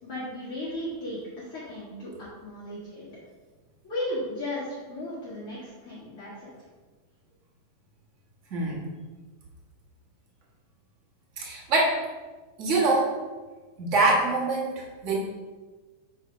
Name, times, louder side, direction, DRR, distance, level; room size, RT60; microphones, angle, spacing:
voice 1, 0.0-3.1 3.8-6.5, left 1 dB, 50° left, -9 dB, 2.4 m, -35 dB
voice 2, 8.5-8.8 11.4-12.0 12.6-13.1 13.8-15.2, right 2 dB, 35° right, -4 dB, 1.4 m, -24 dB
7.3 x 4.0 x 5.1 m, 1.3 s
omnidirectional pair, 3.3 m